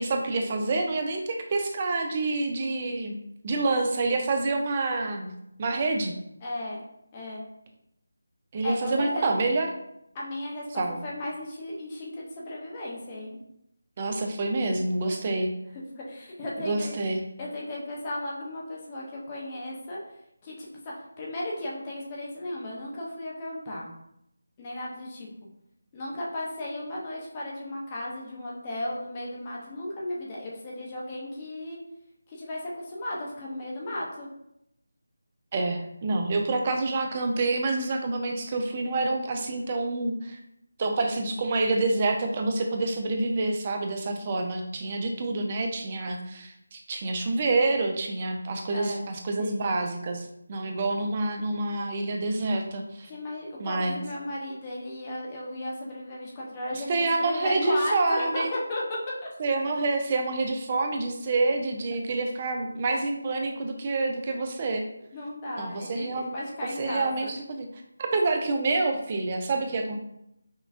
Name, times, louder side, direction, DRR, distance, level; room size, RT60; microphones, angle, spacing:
voice 1, 0.0-3.2 3.4-5.3 5.6-6.1 8.5-9.7 10.8-11.0 14.0-15.5 16.6-17.2 35.5-40.4 40.8-53.1 53.6-54.0 56.7-58.5 59.4-64.8 65.6-66.3 66.8-67.7 68.1-70.0, right 2 dB, 30° right, 3 dB, 0.5 m, -27 dB
voice 2, 6.4-6.8 7.1-7.4 8.6-9.3 10.1-13.4 15.7-16.9 17.4-20.0 20.4-23.9 24.6-25.3 25.9-31.8 32.3-34.3 48.7-49.0 49.4-49.6 53.1-59.3 65.1-67.3, left 1 dB, 25° left, -4 dB, 0.7 m, -35 dB
5.4 x 2.3 x 2.5 m, 0.79 s
figure-of-eight pair, 160°, 0 cm